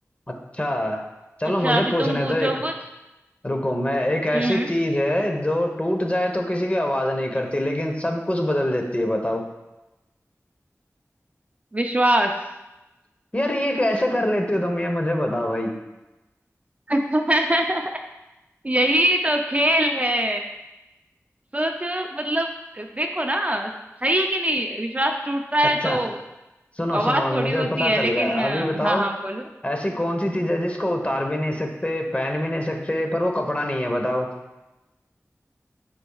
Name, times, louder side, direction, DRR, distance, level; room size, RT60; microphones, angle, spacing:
voice 1, 0.6-1.0 1.4-2.5 3.4-9.4 13.3-15.7 25.8-26.0 26.8-29.0 29.6-34.3, left 1 dB, 25° left, 2 dB, 1.0 m, -24 dB
voice 2, 1.6-2.7 4.3-4.7 11.7-12.3 16.9-17.8 18.6-20.4 21.5-22.5 22.7-23.7 24.0-26.2 26.9-29.5, right 1 dB, 25° right, 3 dB, 0.5 m, -23 dB
10.0 x 5.3 x 2.4 m, 1.0 s
wide cardioid pair, 55°, 5 cm